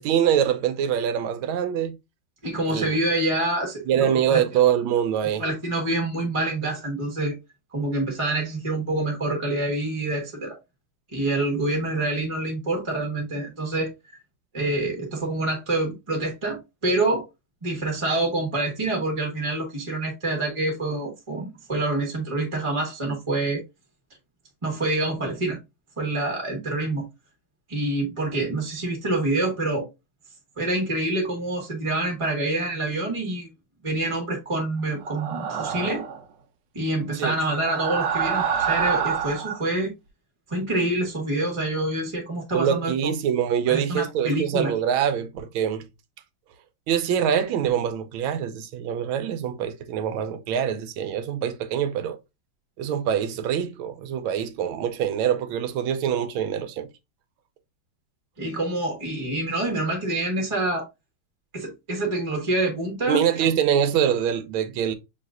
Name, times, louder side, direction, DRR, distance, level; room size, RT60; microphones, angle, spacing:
voice 1, 0.0-2.0 2.7-3.0 3.9-5.4 37.2-37.4 42.5-45.9 46.9-52.2 52.8-56.9 63.1-64.9, right 9 dB, 85° right, 1.5 m, -24 dB
voice 2, 2.4-4.4 5.4-7.4 7.7-10.6 11.1-13.9 14.5-17.3 17.6-23.6 24.6-25.6 26.0-27.0 27.7-29.9 30.6-33.5 33.8-36.0 36.7-39.9 40.5-43.1 43.7-44.7 58.4-60.8 61.5-63.5, right 2 dB, 20° right, 1.0 m, -26 dB
sound 1, 35.0-36.2 37.5-39.6, right 7 dB, 70° right, 1.2 m, -27 dB
5.7 x 3.2 x 2.4 m
omnidirectional pair, 2.2 m